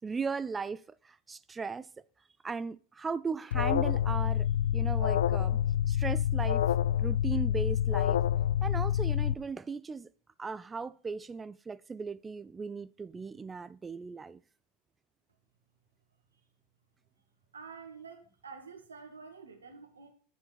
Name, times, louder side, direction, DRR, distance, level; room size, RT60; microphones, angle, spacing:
voice 1, 0.0-1.9 2.4-5.6 5.9-6.6 7.0-8.2 8.6-10.1 10.4-14.4, right 5 dB, 15° right, 0.4 m, -37 dB
Alarm, 3.5-9.3, left 10 dB, 65° left, 0.5 m, -27 dB
voice 2, 17.5-20.1, right 5 dB, 75° right, 1.9 m, -48 dB
9.8 x 7.2 x 5.3 m
figure-of-eight pair, 85°, 0 cm